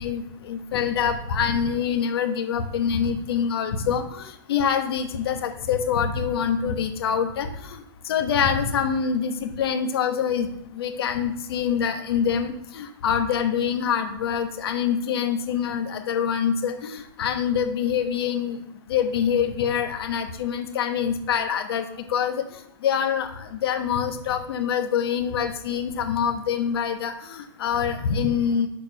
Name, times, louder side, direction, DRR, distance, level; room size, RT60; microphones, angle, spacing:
voice 1, 0.0-7.8 8.1-10.5 10.8-18.6 18.9-21.8 22.1-22.4 22.8-28.7, left 7 dB, 65° left, 6 dB, 1.2 m, -25 dB
6.7 x 4.8 x 4.8 m, 0.78 s
supercardioid pair, 180°, 14 cm